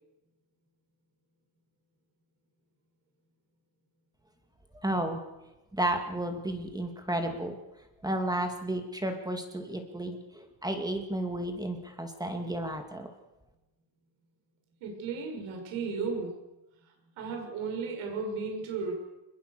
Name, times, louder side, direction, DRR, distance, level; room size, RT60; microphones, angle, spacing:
voice 1, 4.8-5.2 5.7-7.6 8.0-13.1, right 1 dB, 10° right, 5 dB, 2.3 m, -32 dB
voice 2, 14.8-16.3 17.2-18.9, right 4 dB, 85° right, 2 dB, 6.8 m, -34 dB
24.0 x 21.5 x 6.8 m, 1.0 s
cardioid pair, 145°, 48 cm